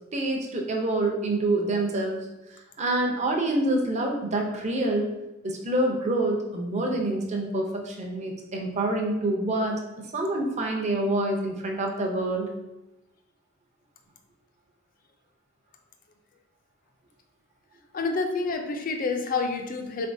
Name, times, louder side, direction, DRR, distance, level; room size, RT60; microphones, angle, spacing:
voice 1, 0.1-2.2 2.8-5.1 5.4-9.8 10.1-12.5, right 2 dB, 35° right, 1 dB, 0.6 m, -26 dB
voice 2, 17.9-20.1, left 3 dB, 45° left, 5 dB, 0.4 m, -28 dB
4.0 x 3.4 x 2.6 m, 0.95 s
head